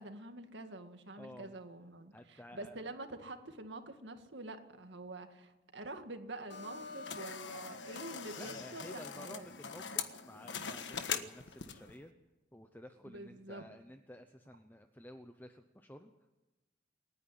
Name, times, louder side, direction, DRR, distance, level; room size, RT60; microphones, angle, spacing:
voice 1, 0.0-9.5 13.0-13.7, right 2 dB, 75° right, 6 dB, 2.0 m, -47 dB
voice 2, 1.2-1.5 2.1-2.8 8.4-12.1 12.5-16.1, left 1 dB, 10° left, 7 dB, 0.8 m, -52 dB
sound 1, 6.5-12.0, left 6 dB, 75° left, 1.4 m, -42 dB
28.0 x 10.0 x 9.9 m, 1.1 s
head